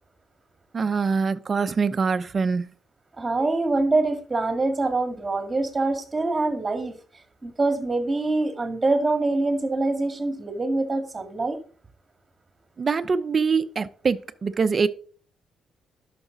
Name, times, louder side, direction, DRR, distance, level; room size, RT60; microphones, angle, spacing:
voice 1, 0.7-2.7 12.8-14.9, right 5 dB, 35° right, 0.7 m, -24 dB
voice 2, 3.2-7.0 7.4-11.6, right 2 dB, 20° right, 2.0 m, -24 dB
11.5 x 6.0 x 3.9 m
cardioid pair, 120°, 0 cm